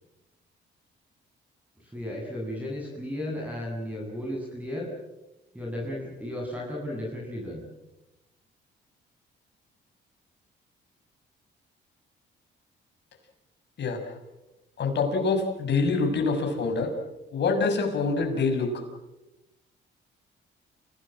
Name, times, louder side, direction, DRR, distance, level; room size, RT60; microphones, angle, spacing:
voice 1, 1.8-4.9 5.5-7.6, left 1 dB, 5° right, -2 dB, 7.9 m, -34 dB
voice 2, 13.8-14.1 14.8-16.9 17.3-18.7, left 4 dB, 60° left, 4 dB, 6.3 m, -25 dB
28.5 x 18.5 x 7.7 m, 0.97 s
cardioid pair, 90°, 20 cm